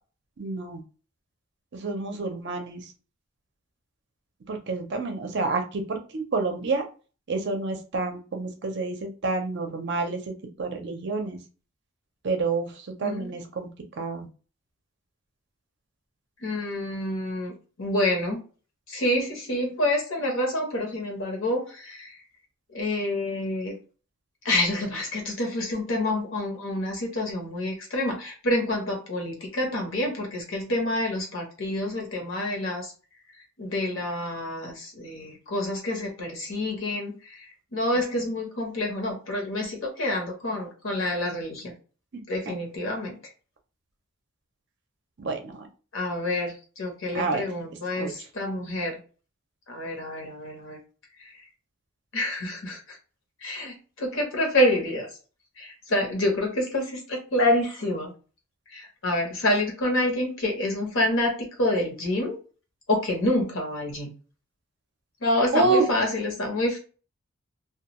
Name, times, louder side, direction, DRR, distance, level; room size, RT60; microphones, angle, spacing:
voice 1, 0.4-0.8 1.7-2.8 4.5-6.8 7.3-11.4 12.2-12.7 13.0-13.7 14.0-14.3 42.5-42.6 45.2-45.7 47.1-47.4 48.0-48.1 65.5-65.9, right 3 dB, 50° right, 4 dB, 0.5 m, -28 dB
voice 2, 13.0-13.3 16.4-17.5 17.8-18.4 18.9-22.2 22.7-23.8 24.4-32.9 33.6-41.7 42.3-43.2 45.9-49.0 49.7-50.8 51.2-51.4 52.1-53.0 53.4-55.1 55.6-58.1 58.7-62.4 62.9-64.1 65.2-66.8, left 1 dB, 65° left, 1 dB, 0.9 m, -27 dB
2.3 x 2.2 x 2.9 m, 0.36 s
head